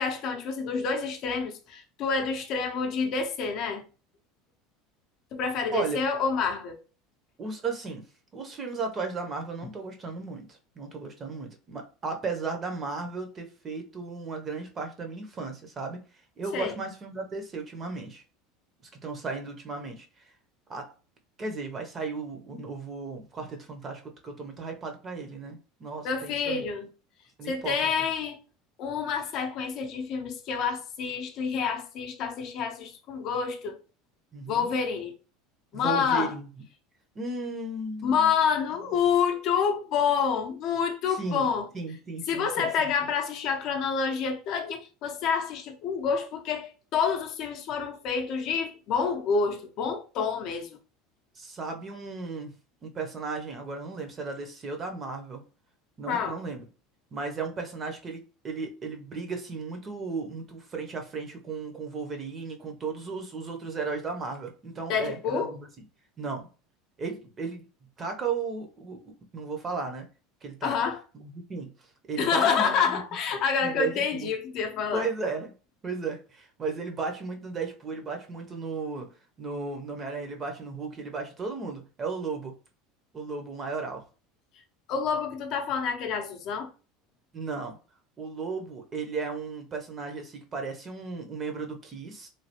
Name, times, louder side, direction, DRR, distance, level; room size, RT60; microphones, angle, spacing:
voice 1, 0.0-3.8 5.3-6.8 16.5-16.7 26.0-26.9 27.5-28.4 28.8-33.8 34.5-35.1 35.7-36.3 38.0-41.7 42.3-50.8 56.1-56.4 64.9-65.5 70.6-71.0 72.2-75.1 84.9-86.7, left 6 dB, 50° left, 0.5 m, -28 dB
voice 2, 7.4-8.0 8.3-16.0 16.4-18.2 19.0-20.2 20.7-20.9 21.4-26.7 27.4-27.9 34.3-34.7 35.7-36.4 37.1-38.3 41.1-41.5 41.7-43.1 51.4-52.5 52.8-55.4 56.0-56.6 57.1-65.7 66.2-66.5 67.0-67.6 68.0-70.0 70.4-70.7 71.1-71.7 72.1-73.0 73.6-73.9 74.2-74.3 74.9-75.5 75.8-79.1 79.4-82.5 83.1-84.0 87.3-87.8 88.2-92.3, right 4 dB, 25° right, 0.6 m, -35 dB
3.1 x 2.3 x 2.8 m
supercardioid pair, 145°, 0 cm